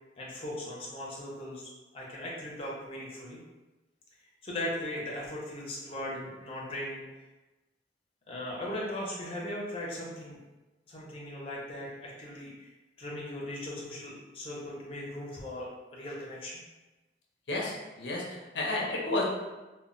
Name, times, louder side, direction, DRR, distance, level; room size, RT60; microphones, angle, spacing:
voice 1, 0.2-3.4 4.4-7.0 8.3-10.4 10.9-12.7 13.0-16.6, left 1 dB, 30° left, -4 dB, 0.5 m, -38 dB
voice 2, 17.5-19.2, left 2 dB, 85° left, -2 dB, 0.6 m, -32 dB
2.1 x 2.0 x 3.6 m, 1.1 s
head